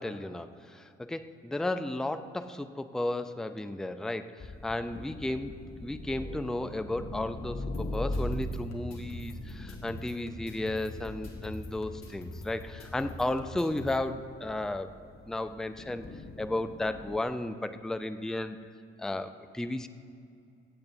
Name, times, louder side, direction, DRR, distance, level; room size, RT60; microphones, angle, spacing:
voice 1, 0.0-14.9 15.3-16.1 16.4-18.6 19.0-19.9, left 1 dB, ahead, 10 dB, 0.6 m, -34 dB
sound 1, 4.4-17.2, left 1 dB, 30° left, 1.0 m, -41 dB
sound 2, 7.7-14.0, left 1 dB, 55° left, 1.7 m, -46 dB
24.0 x 8.6 x 2.8 m, 2.5 s
hypercardioid pair, 40°, 31 cm